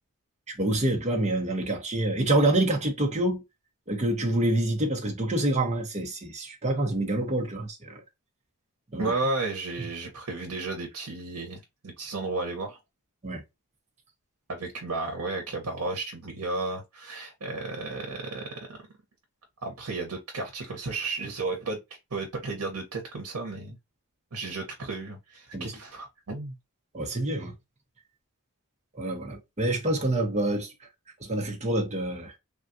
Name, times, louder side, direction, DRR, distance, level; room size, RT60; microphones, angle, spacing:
voice 1, 0.5-3.4 3.9-8.0 8.9-9.1 13.2-13.4 25.5-25.7 26.9-27.5 28.9-30.7 31.2-32.3, right 1 dB, 30° right, 0.9 m, -27 dB
voice 2, 9.0-12.8 14.5-18.8 19.6-21.8 22.1-23.8 24.3-26.5, right 3 dB, 80° right, 1.0 m, -33 dB
3.5 x 2.4 x 2.6 m
head